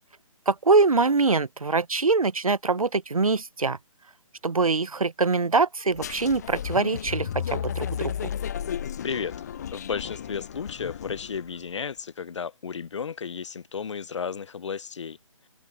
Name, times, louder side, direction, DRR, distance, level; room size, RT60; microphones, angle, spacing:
voice 1, 0.5-3.8 4.4-8.1, right 4 dB, 85° right, 1.0 m, -23 dB
sound 1, 5.9-11.5, left 9 dB, 30° left, 0.4 m, -33 dB
voice 2, 9.0-9.3 9.7-15.2, left 6 dB, 55° left, 0.8 m, -33 dB
figure-of-eight pair, 145°, 18 cm